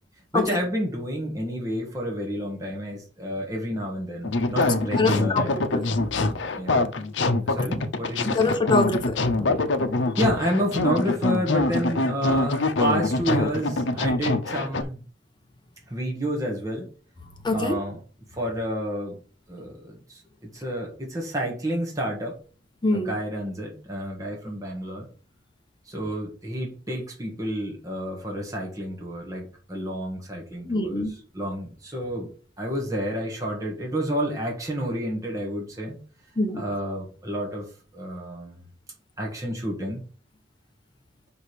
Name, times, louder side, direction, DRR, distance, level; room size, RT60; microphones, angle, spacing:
voice 1, 0.3-5.6 6.6-6.9 7.4-8.6 10.2-15.0 15.9-16.9 17.5-18.0 18.3-19.2 19.5-22.4 22.9-25.1 25.9-32.3 32.6-36.0 36.5-37.7 37.9-38.6 39.2-40.0, equal, 20° right, 1.7 m, -30 dB
sound 1, 4.2-14.8, left 2 dB, 80° left, 0.7 m, -24 dB
voice 2, 5.0-5.4 5.7-5.8 8.3-9.6 17.4-17.8 22.8-23.2 30.6-31.1 36.4-36.6, left 2 dB, 25° left, 1.0 m, -24 dB
5.2 x 4.9 x 5.0 m
head